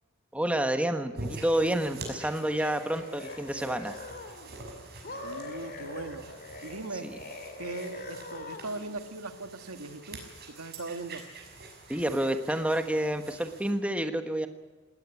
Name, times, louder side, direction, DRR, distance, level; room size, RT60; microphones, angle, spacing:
voice 1, 0.3-3.9 7.0-7.2 11.9-14.5, right 1 dB, 5° right, 7 dB, 1.3 m, -29 dB
sound 1, 1.1-13.7, right 2 dB, 50° right, 6.0 m, -46 dB
sound 2, 2.3-4.5 5.0-8.9, left 2 dB, 45° left, 2.8 m, -43 dB
voice 2, 5.2-6.3 6.6-7.2 7.6-11.3, right 3 dB, 80° right, 7 dB, 1.8 m, -39 dB
19.5 x 18.0 x 8.4 m, 1.3 s
head